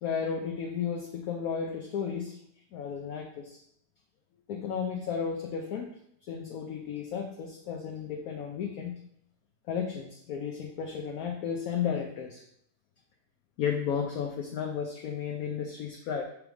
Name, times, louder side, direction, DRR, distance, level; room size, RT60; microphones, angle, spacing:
voice 1, 0.0-2.4 2.7-3.6 4.5-5.9 6.3-9.0 9.7-12.4 13.6-16.2, left 7 dB, 65° left, 2 dB, 1.0 m, -33 dB
6.1 x 3.4 x 4.8 m, 0.70 s
omnidirectional pair, 1.9 m